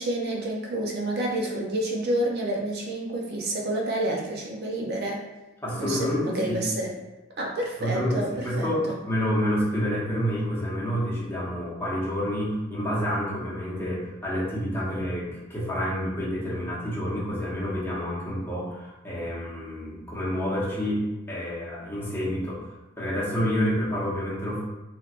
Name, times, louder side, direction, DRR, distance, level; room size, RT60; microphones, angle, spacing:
voice 1, 0.0-5.2 5.8-6.9 7.4-9.0, right 1 dB, 55° right, -1 dB, 0.5 m, -29 dB
voice 2, 5.6-6.6 7.8-21.0 21.3-22.6 23.0-24.6, equal, 10° left, -7 dB, 0.9 m, -28 dB
3.2 x 3.0 x 2.5 m, 1.0 s
head